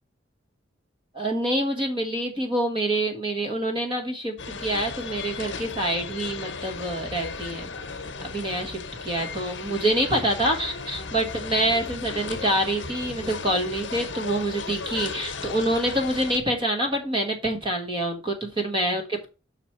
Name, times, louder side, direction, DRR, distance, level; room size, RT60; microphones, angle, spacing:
voice 1, 1.1-7.7 8.2-19.3, right 1 dB, 25° right, 2 dB, 1.3 m, -26 dB
sound 1, 4.4-16.4, left 4 dB, 70° left, 0.9 m, -36 dB
6.0 x 5.8 x 4.4 m, 0.31 s
head